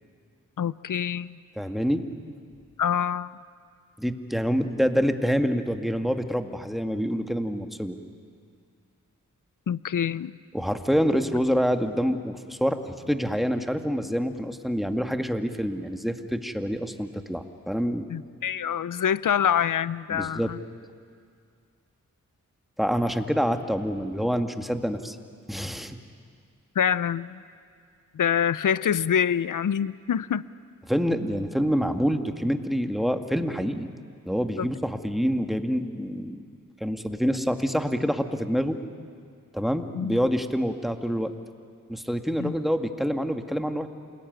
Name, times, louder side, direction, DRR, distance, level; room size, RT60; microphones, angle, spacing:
voice 1, 0.6-1.4 2.8-3.3 9.7-10.3 18.1-20.6 26.8-27.4 28.1-30.4 34.6-34.7 39.9-40.3 42.4-42.5, left 8 dB, 70° left, 18 dB, 0.7 m, -26 dB
voice 2, 1.6-2.0 4.0-8.0 10.5-12.8 13.1-18.1 20.1-20.5 22.8-25.2 25.5-26.0 30.9-33.9 34.3-36.4 36.8-38.8 39.5-41.3 41.9-43.9, equal, ahead, 6 dB, 2.1 m, -26 dB
28.0 x 20.5 x 9.5 m, 2.3 s
cardioid pair, 40°, 32 cm